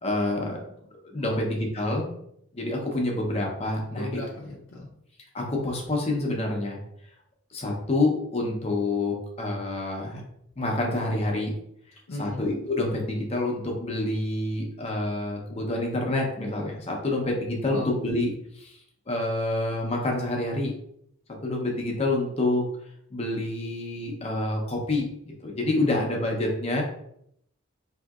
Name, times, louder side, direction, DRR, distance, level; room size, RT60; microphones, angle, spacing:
voice 1, 0.0-0.6 1.1-2.1 2.5-4.2 5.3-6.8 7.5-10.2 10.6-11.5 12.2-18.8 19.1-20.7 21.4-22.6 23.1-26.8, left 2 dB, 30° left, 0 dB, 0.7 m, -27 dB
voice 2, 3.9-4.9 12.1-12.4 17.7-17.9, left 1 dB, 65° left, -4 dB, 0.6 m, -37 dB
3.8 x 2.7 x 2.3 m, 0.72 s
head